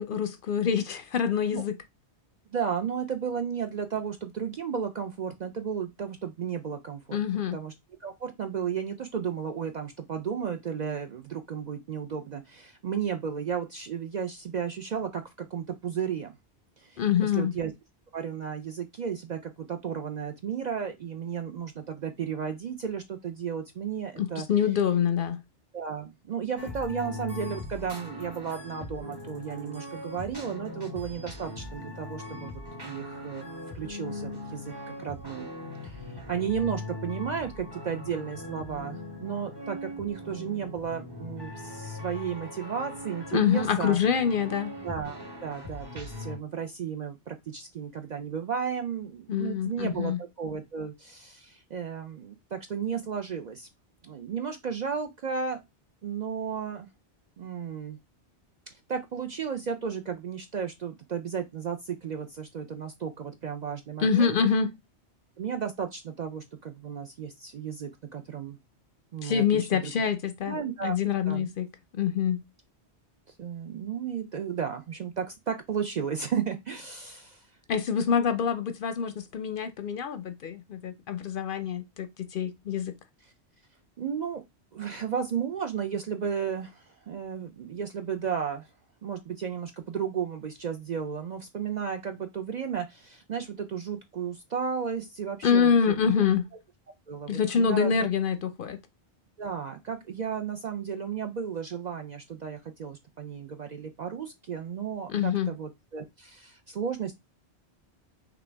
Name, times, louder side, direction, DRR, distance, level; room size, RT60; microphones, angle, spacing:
voice 1, 0.0-1.8 7.1-7.6 17.0-17.5 24.2-25.4 43.3-44.7 49.3-50.2 64.0-64.7 69.2-71.7 71.9-72.4 77.7-82.9 95.4-96.4 97.3-98.8 105.1-105.5, left 7 dB, 60° left, 0.6 m, -26 dB
voice 2, 2.5-7.2 7.5-7.7 8.0-16.3 16.8-17.7 18.1-24.5 25.7-32.5 32.8-33.5 33.7-35.5 35.8-44.0 44.8-53.7 54.0-55.6 56.0-56.9 57.4-58.0 58.7-64.4 65.4-68.6 69.1-69.9 70.5-71.0 71.3-71.5 73.4-77.5 84.0-84.4 84.7-88.7 89.0-96.2 97.1-98.1 99.4-107.1, right 7 dB, 55° right, 0.5 m, -34 dB
sound 1, 26.6-46.4, left 2 dB, 25° right, 0.9 m, -40 dB
5.9 x 2.3 x 3.3 m
omnidirectional pair, 1.1 m